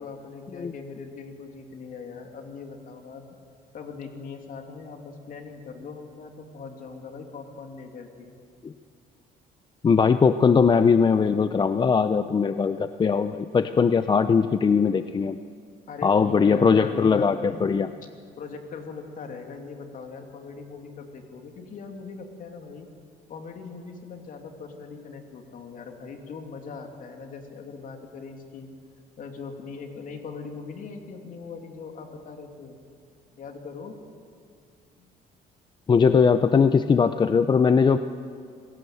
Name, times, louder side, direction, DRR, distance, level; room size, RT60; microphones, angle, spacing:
voice 1, 0.0-3.4 3.7-8.4 15.9-17.8 18.4-22.9 23.3-28.7 29.2-32.8 33.3-34.0 35.0-35.1, left 5 dB, 55° left, 4 dB, 2.8 m, -40 dB
voice 2, 9.8-15.4 16.0-17.9 35.9-38.0, left 5 dB, 25° left, 11 dB, 0.6 m, -20 dB
26.5 x 16.5 x 7.8 m, 2.3 s
cardioid pair, 110°, 17 cm